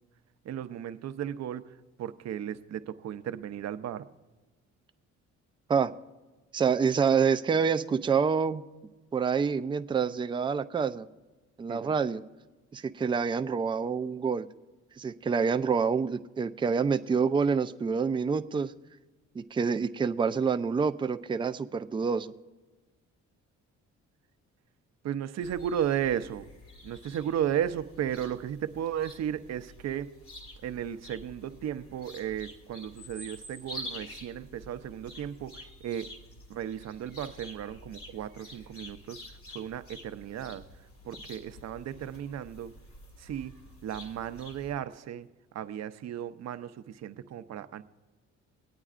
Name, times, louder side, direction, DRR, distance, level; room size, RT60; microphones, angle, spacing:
voice 1, 0.4-4.1 11.7-11.9 25.0-26.5 26.8-30.1 30.6-36.1 36.5-39.2 39.5-40.7 41.0-42.8 43.2-47.8, right 10 dB, 60° right, 12 dB, 0.6 m, -35 dB
voice 2, 6.5-8.6 9.1-11.1 11.6-12.2 12.7-14.5 15.0-18.7 19.4-22.3, right 6 dB, 15° right, 10 dB, 0.4 m, -27 dB
sound 1, 25.4-44.7, left 1 dB, 45° left, 1.9 m, -48 dB
25.0 x 8.9 x 2.5 m, 1.2 s
cardioid pair, 90°, 30 cm